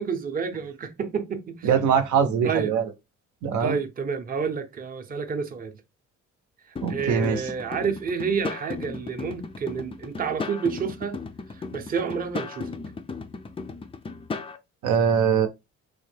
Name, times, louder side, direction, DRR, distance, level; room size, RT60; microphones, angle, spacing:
voice 1, 0.0-1.7 2.4-2.7 3.6-5.8 6.9-11.2 11.7-12.7, right 6 dB, 30° right, 0.6 m, -29 dB
voice 2, 1.6-2.9 3.4-3.8 6.8-7.5 14.8-15.5, right 7 dB, 75° right, 0.6 m, -22 dB
sound 1, 6.8-14.6, left 4 dB, 20° left, 0.4 m, -36 dB
3.4 x 2.1 x 3.2 m
cardioid pair, 90°, 30 cm